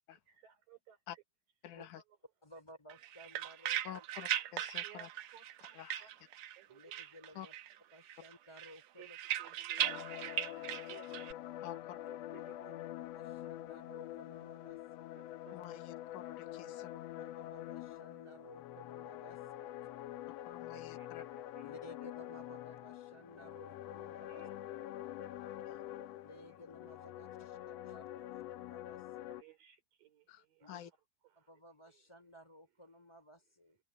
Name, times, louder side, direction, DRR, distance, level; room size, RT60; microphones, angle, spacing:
voice 1, 0.1-1.0 1.8-1.9 4.8-5.1 5.3-6.1 6.6-7.0 9.0-9.1 9.4-11.0 11.3-11.6 12.1-12.8 15.2-15.8 20.7-21.7 24.3-24.5 25.2-25.3 29.3-30.8, right 9 dB, 80° right, 5.4 m, -60 dB
voice 2, 1.6-2.0 3.8-5.1 5.7-6.3 7.4-7.5 9.9-10.0 11.6-12.0 15.5-16.9 20.5-21.2 25.7-25.8 30.3-30.9, left 11 dB, 70° left, 2.5 m, -49 dB
voice 3, 2.4-4.0 6.7-7.5 7.9-9.2 9.4-9.8 12.4-12.8 13.1-15.1 17.1-20.0 21.6-24.5 26.2-29.3 30.6-30.8 31.4-33.8, equal, 10° left, 4.0 m, -57 dB
sound 1, 2.9-6.6 6.9-7.8 8.1-11.3, right 11 dB, 65° right, 1.9 m, -39 dB
sound 2, 9.8-29.4, left 13 dB, 90° left, 1.4 m, -46 dB
open air
omnidirectional pair, 3.9 m